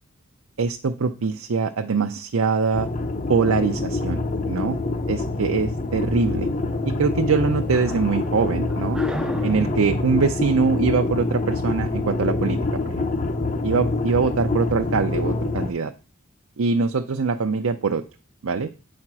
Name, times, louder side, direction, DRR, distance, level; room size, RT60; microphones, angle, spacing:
voice 1, 0.6-2.9 3.3-4.8 5.1-6.5 6.8-9.0 9.4-12.6 12.9-13.1 13.6-15.9 16.6-18.0 18.4-18.7, right 4 dB, 80° right, 5 dB, 0.6 m, -23 dB
sound 1, 2.7-15.7, left 2 dB, 35° left, 0.7 m, -26 dB
sound 2, 6.5-12.0, right 1 dB, 5° right, 0.4 m, -38 dB
8.7 x 4.4 x 6.0 m, 0.35 s
head